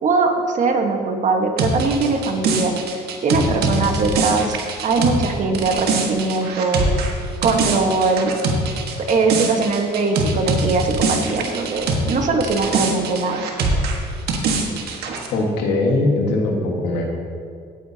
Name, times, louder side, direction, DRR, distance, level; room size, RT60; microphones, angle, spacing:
voice 1, 0.0-2.7 3.2-4.6 4.8-6.8 7.4-8.4 9.0-13.4, right 3 dB, 45° right, 4 dB, 1.3 m, -21 dB
sound 1, 1.6-12.2 12.4-15.3, right 3 dB, 70° right, 1.5 m, -23 dB
voice 2, 15.3-17.2, left 2 dB, 85° left, 1 dB, 1.7 m, -20 dB
16.5 x 8.9 x 2.8 m, 2.3 s
cardioid pair, 110°, 17 cm